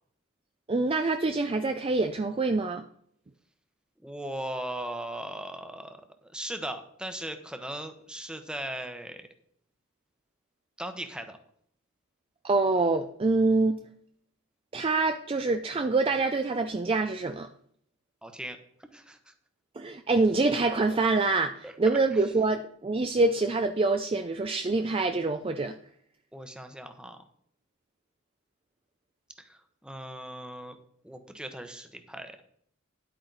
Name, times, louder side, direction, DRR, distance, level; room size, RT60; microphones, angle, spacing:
voice 1, 0.7-2.8 12.4-13.8 14.7-17.5 19.8-25.8, right 3 dB, 25° right, 0.4 m, -26 dB
voice 2, 4.0-9.3 10.8-11.4 18.2-19.3 21.6-22.3 26.3-27.2 29.4-30.8 31.0-32.4, right 1 dB, 5° right, 0.9 m, -39 dB
11.0 x 8.7 x 4.0 m
head